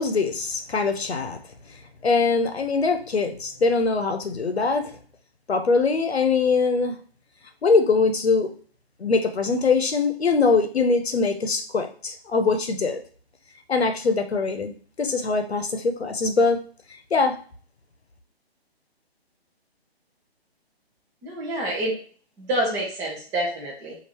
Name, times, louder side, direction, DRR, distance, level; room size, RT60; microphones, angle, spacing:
voice 1, 0.0-1.4 2.0-4.9 5.5-7.0 7.6-8.5 9.0-13.0 13.7-14.7 15.0-16.6 17.1-17.4, left 4 dB, 85° left, 7 dB, 0.9 m, -22 dB
voice 2, 21.2-22.0 22.4-24.0, right 1 dB, 10° right, -3 dB, 0.7 m, -27 dB
3.4 x 2.6 x 4.5 m, 0.43 s
hypercardioid pair, 150°, 31 cm